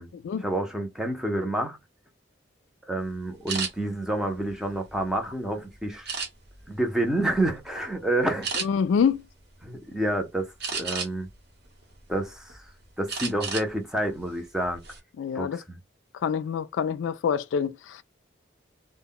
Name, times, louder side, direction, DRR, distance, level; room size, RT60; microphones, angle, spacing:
voice 1, 0.4-1.8 2.9-6.1 6.7-8.5 9.6-11.3 12.1-12.6 13.0-14.8 15.3-15.8, right 1 dB, 5° right, 0.6 m, -28 dB
sound 1, 3.5-3.7 4.3-5.3 6.1-6.6 7.2-7.4 7.8-7.9 8.4-8.7 10.6-11.3 11.8-12.6 13.1-13.7 14.0-14.2 14.6-15.0, right 5 dB, 60° right, 0.9 m, -32 dB
voice 2, 8.6-9.3 15.2-15.6 16.2-18.0, left 7 dB, 80° left, 0.3 m, -26 dB
2.1 x 2.1 x 3.6 m
head